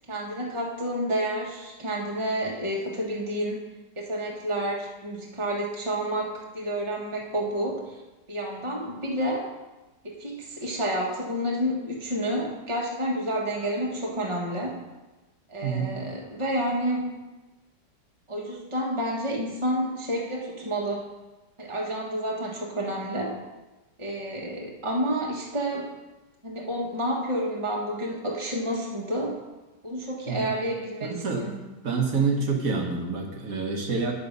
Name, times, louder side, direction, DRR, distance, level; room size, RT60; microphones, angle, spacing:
voice 1, 0.1-3.6 4.0-7.9 8.3-9.5 10.0-14.8 15.5-17.1 18.3-21.1 21.6-23.3 24.0-25.9 26.4-29.4 29.8-31.5, right 1 dB, 20° right, -2 dB, 1.5 m, -29 dB
voice 2, 15.6-15.9 30.3-30.5 31.0-31.5 31.8-34.1, right 4 dB, 55° right, 2 dB, 1.7 m, -27 dB
9.6 x 6.9 x 5.4 m, 1.1 s
omnidirectional pair, 1.9 m